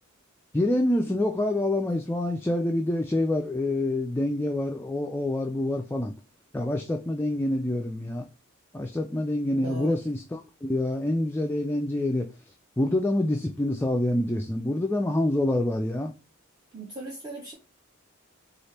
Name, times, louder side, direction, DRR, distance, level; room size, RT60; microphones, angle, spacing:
voice 1, 0.5-6.1 6.5-8.3 8.7-12.3 12.8-16.1, left 1 dB, 10° left, 0.3 m, -26 dB
voice 2, 9.5-10.0 16.7-17.5, equal, 20° right, 0.8 m, -38 dB
4.2 x 2.4 x 3.2 m
head